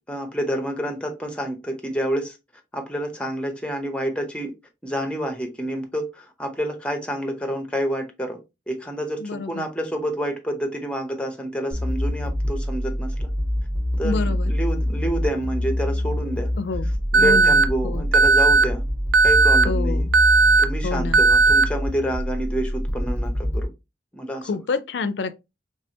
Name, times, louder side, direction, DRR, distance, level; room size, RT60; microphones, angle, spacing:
voice 1, 0.1-2.4 2.7-4.5 4.8-8.4 8.7-13.3 14.0-16.5 17.1-18.8 19.2-20.0 20.6-23.7 24.1-24.5, equal, 5° left, 0.7 m, -28 dB
voice 2, 9.2-9.7 14.0-14.5 16.6-16.9 17.2-18.1 19.7-20.1 20.8-21.2 24.4-25.3, left 4 dB, 75° left, 0.4 m, -28 dB
sound 1, 11.7-23.6, equal, 15° right, 1.0 m, -25 dB
Alarm, 17.1-17.6 18.1-18.6 19.1-19.6 20.1-20.6 21.1-21.6, right 4 dB, 80° right, 0.4 m, -15 dB
3.3 x 3.2 x 2.7 m
head